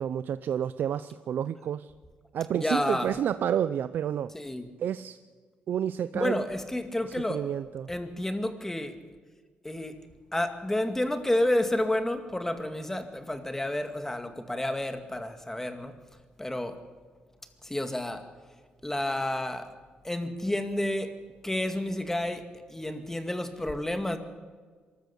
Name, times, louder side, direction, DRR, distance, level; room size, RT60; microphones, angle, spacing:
voice 1, 0.0-1.9 2.3-4.3 4.8-5.2 5.7-6.5 7.3-7.9, right 9 dB, 75° right, 0.5 m, -30 dB
voice 2, 2.5-3.2 4.3-4.7 6.1-7.4 7.9-9.0 9.6-10.0 10.3-15.9 16.4-16.8 17.6-18.3 18.8-19.7 20.0-21.2 21.4-24.2, left 1 dB, 10° left, 2.2 m, -30 dB
23.5 x 13.5 x 8.3 m
cardioid pair, 80°, 3 cm